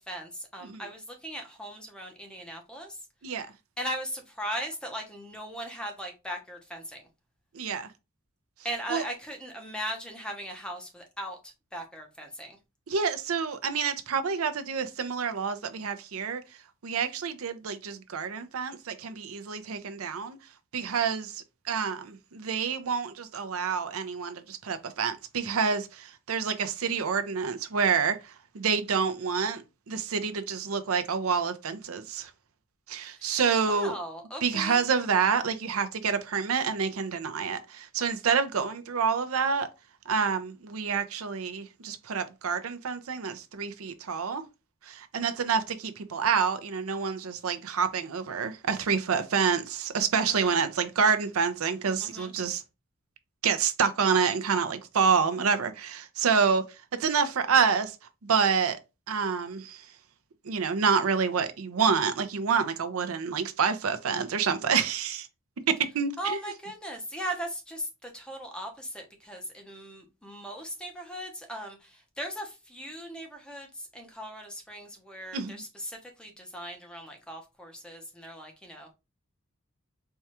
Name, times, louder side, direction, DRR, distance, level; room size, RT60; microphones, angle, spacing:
voice 1, 0.1-3.0 3.8-7.0 8.6-12.6 33.2-33.4 33.7-34.8 50.3-50.6 52.0-52.3 66.2-78.9, equal, 5° left, 0.7 m, -38 dB
voice 2, 7.5-7.9 8.9-9.0 12.9-16.4 16.8-20.4 20.7-32.3 32.9-33.9 34.4-39.7 40.1-44.4 44.9-52.6 53.4-56.6 57.0-58.0 58.2-58.8 59.1-59.8 60.4-65.3 65.7-66.4 75.3-75.6, right 6 dB, 85° right, 0.5 m, -28 dB
4.5 x 2.3 x 2.8 m
head